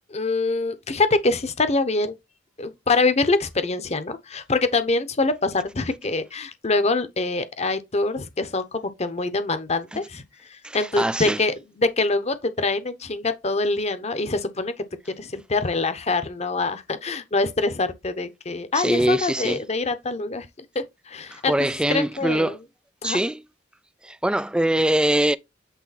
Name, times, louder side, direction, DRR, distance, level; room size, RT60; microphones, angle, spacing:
voice 1, 0.1-2.1 2.6-10.2 10.5-14.7 15.1-20.5 20.7-21.5 21.9-22.6 23.0-23.2, left 3 dB, 35° left, 0.9 m, -24 dB
voice 2, 10.6-11.4 18.7-19.6 21.3-22.6 23.0-23.4 24.0-25.4, right 1 dB, 5° right, 0.3 m, -23 dB
8.2 x 3.4 x 4.1 m
head